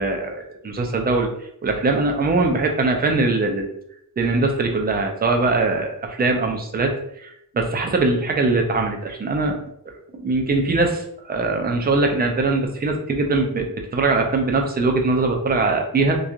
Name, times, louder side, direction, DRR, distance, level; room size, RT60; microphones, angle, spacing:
voice 1, 0.0-1.3 1.6-3.7 4.2-9.6 10.1-16.2, right 3 dB, 25° right, 3 dB, 0.4 m, -21 dB
2.8 x 2.3 x 2.4 m, 0.73 s
wide cardioid pair, 135°, 36 cm